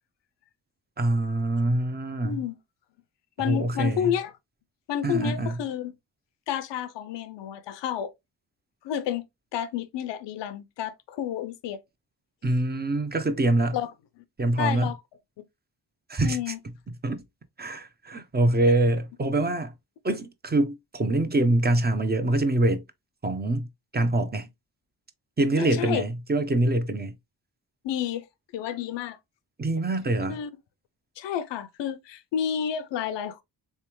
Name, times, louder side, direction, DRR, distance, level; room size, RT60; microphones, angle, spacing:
voice 1, 1.0-2.4 3.4-4.1 5.0-5.6 12.4-13.8 14.4-14.9 16.1-16.5 17.0-17.2 17.6-19.7 20.0-22.8 23.2-23.7 23.9-24.5 25.4-27.1 29.6-30.4, right 2 dB, 25° right, 0.8 m, -24 dB
voice 2, 2.2-2.6 3.4-4.3 4.9-5.9 6.5-8.1 8.8-9.3 9.5-11.8 13.7-13.9 14.2-14.3 14.6-15.0 16.2-16.6 25.6-26.0 27.8-28.3 28.5-29.2 30.3-30.5 31.2-33.4, left 9 dB, 85° left, 0.6 m, -30 dB
3.4 x 3.3 x 3.0 m
cardioid pair, 55°, 42 cm